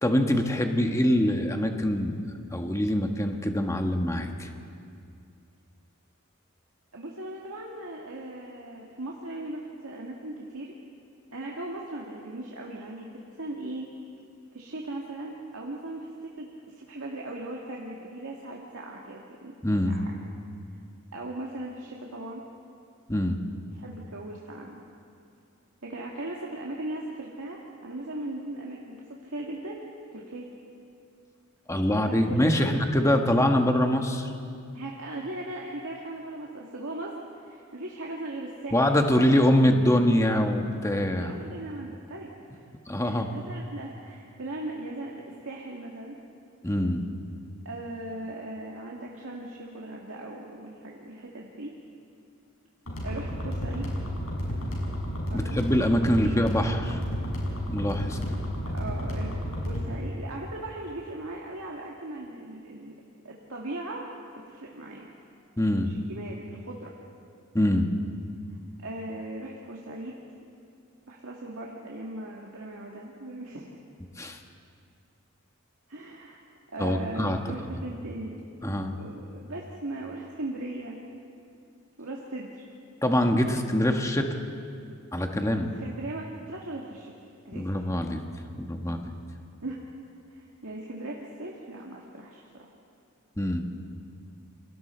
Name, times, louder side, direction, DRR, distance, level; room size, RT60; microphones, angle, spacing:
voice 1, 0.0-2.1 2.5-4.5 19.6-19.9 23.1-23.4 31.7-34.3 38.7-41.3 42.9-43.3 46.6-47.0 55.3-57.0 57.7-58.2 65.6-65.9 67.5-67.9 74.2-74.4 76.8-77.4 78.6-78.9 83.0-84.4 85.1-85.7 87.5-88.2 88.6-89.1 93.4-93.6, left 1 dB, 15° left, 4 dB, 1.3 m, -24 dB
voice 2, 6.9-10.8 11.3-13.9 14.5-19.5 19.9-20.1 21.1-22.4 23.7-24.8 25.8-29.9 30.1-30.5 31.9-32.8 34.7-39.0 41.1-42.7 43.0-46.2 47.7-51.7 53.0-53.9 55.3-55.6 56.2-56.4 58.7-63.0 63.2-64.1 64.3-65.1 65.8-66.9 68.8-70.2 71.1-73.7 75.9-76.4 76.7-78.4 79.0-81.0 82.0-82.6 85.5-87.1 87.5-87.7 89.6-89.8 90.3-92.7, right 1 dB, 85° right, -2 dB, 1.9 m, -38 dB
sound 1, 52.9-59.9, equal, 80° left, 6.0 m, -31 dB
29.0 x 24.5 x 4.4 m, 2.4 s
head